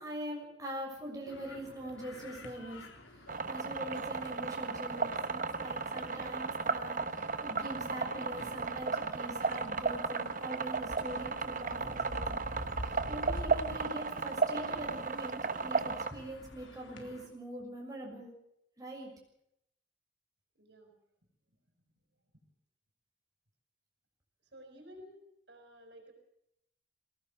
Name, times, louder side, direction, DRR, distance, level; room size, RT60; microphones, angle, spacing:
voice 1, 0.0-2.8 3.5-12.4 12.8-18.3 18.8-19.1, right 1 dB, 20° right, -1 dB, 6.6 m, -43 dB
sound 1, 1.2-17.3, left 1 dB, 80° left, 4.1 m, -48 dB
sound 2, 3.3-16.1, right 4 dB, 45° right, 1.1 m, -34 dB
voice 2, 20.5-20.9 21.5-21.6 24.5-25.2 25.5-26.1, equal, 60° right, 5 dB, 6.0 m, -53 dB
22.5 x 18.0 x 7.2 m, 0.77 s
head